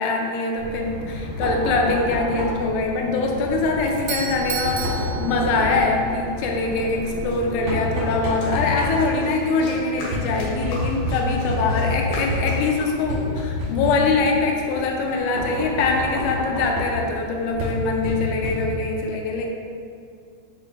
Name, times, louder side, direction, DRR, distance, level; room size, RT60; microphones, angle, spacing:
voice 1, 0.0-19.5, left 3 dB, 80° left, 1 dB, 3.0 m, -23 dB
Knock, 0.6-19.0, left 1 dB, 70° right, 1.5 m, -29 dB
Doorbell, 3.9-6.0, right 8 dB, 90° right, 3.2 m, -32 dB
sound 1, 6.6-6.7 7.3-12.8, left 2 dB, 65° left, 2.8 m, -37 dB
7.1 x 6.3 x 2.5 m, 2.4 s
omnidirectional pair, 5.7 m